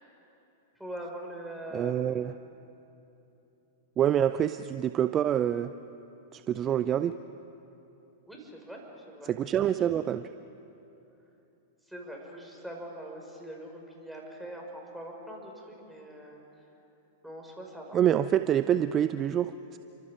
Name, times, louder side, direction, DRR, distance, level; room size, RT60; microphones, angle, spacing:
voice 1, 0.8-1.9 8.3-9.3 11.9-16.4 17.2-18.0, right 1 dB, ahead, -1 dB, 5.4 m, -42 dB
voice 2, 1.7-2.3 4.0-5.7 6.3-7.2 9.2-10.3 17.9-19.8, right 10 dB, 30° right, 12 dB, 0.5 m, -26 dB
29.5 x 25.0 x 5.0 m, 2.9 s
figure-of-eight pair, 100°, 0 cm